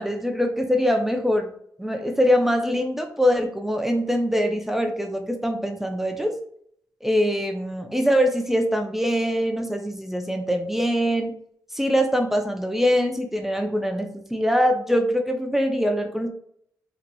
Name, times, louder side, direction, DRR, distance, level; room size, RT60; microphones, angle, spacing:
voice 1, 0.0-1.5 1.8-6.3 7.0-11.3 11.7-16.3, equal, 5° right, 4 dB, 0.5 m, -23 dB
3.9 x 2.8 x 2.2 m, 0.66 s
cardioid pair, 60°, 7 cm